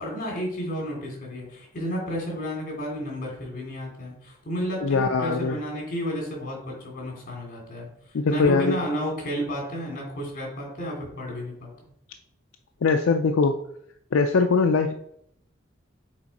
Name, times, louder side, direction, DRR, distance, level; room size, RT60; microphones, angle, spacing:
voice 1, 0.0-7.9 8.3-11.7, equal, 45° left, -1 dB, 2.8 m, -32 dB
voice 2, 4.8-5.6 8.1-8.8 12.8-13.6 14.1-14.9, left 4 dB, 80° left, 6 dB, 0.4 m, -21 dB
7.3 x 4.3 x 4.1 m, 0.72 s
head